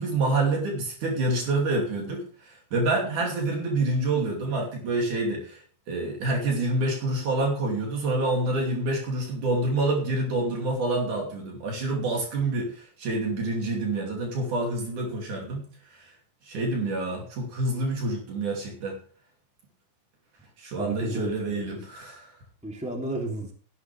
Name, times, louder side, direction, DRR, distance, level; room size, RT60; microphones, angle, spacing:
voice 1, 0.0-5.6 5.9-15.6 15.9-16.1 16.4-19.0 20.6-22.3, right 2 dB, 75° right, 0 dB, 4.3 m, -27 dB
voice 2, 20.8-21.8 22.6-23.5, right 1 dB, ahead, 0 dB, 2.7 m, -33 dB
16.0 x 11.5 x 3.5 m, 0.43 s
omnidirectional pair, 3.6 m